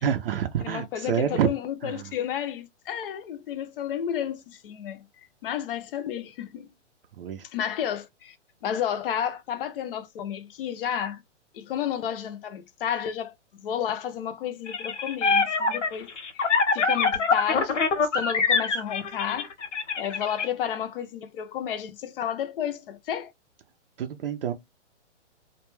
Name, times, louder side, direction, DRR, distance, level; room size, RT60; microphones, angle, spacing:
voice 1, 0.0-1.5 1.8-2.1 7.2-7.4 24.0-24.5, right 9 dB, 50° right, 0.5 m, -27 dB
voice 2, 0.6-6.7 7.5-8.4 8.6-11.2 11.5-17.9 18.1-19.5 20.0-23.3, left 9 dB, 50° left, 0.6 m, -32 dB
sound 1, 14.7-20.5, left 4 dB, 85° left, 1.0 m, -24 dB
2.2 x 2.2 x 3.0 m
hypercardioid pair, 140°, 36 cm